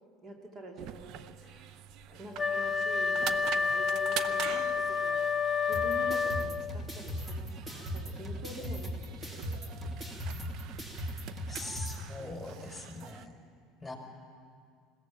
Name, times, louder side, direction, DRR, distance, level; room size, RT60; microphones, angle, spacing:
voice 1, 0.2-1.4 2.1-5.4 5.6-9.6 10.3-10.9 11.9-12.8, right 2 dB, 40° right, 2 dB, 2.5 m, -47 dB
sound 1, 0.8-13.3, right 11 dB, 60° right, 0.6 m, -45 dB
Wind instrument woodwind instrument, 2.4-6.8, left 5 dB, 25° left, 0.6 m, -29 dB
sound 2, 5.7-12.0, equal, 20° right, 2.9 m, -39 dB
voice 2, 11.5-13.3 13.8-14.0, left 2 dB, 5° left, 0 dB, 5.0 m, -42 dB
21.0 x 16.5 x 7.5 m, 2.1 s
hypercardioid pair, 75°, 0 cm